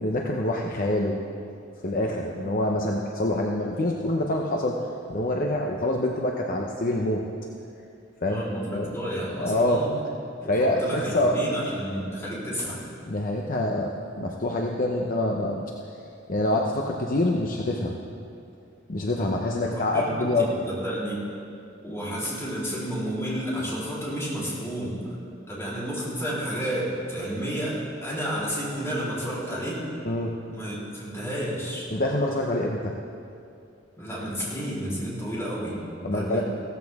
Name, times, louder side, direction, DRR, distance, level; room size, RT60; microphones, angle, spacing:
voice 1, 0.0-1.2 1.8-4.8 5.1-7.2 8.2-8.4 8.7-8.9 9.4-9.8 10.5-11.4 13.1-15.7 16.3-18.0 18.9-20.5 30.0-30.3 31.9-32.9 36.0-36.4, left 1 dB, 45° left, 0 dB, 0.8 m, -26 dB
voice 2, 8.2-9.9 10.4-12.9 19.5-20.3 20.6-21.2 21.8-25.2 25.5-29.8 30.5-31.9 34.0-36.4, equal, 15° left, -8 dB, 3.8 m, -31 dB
16.5 x 14.0 x 3.6 m, 2.5 s
head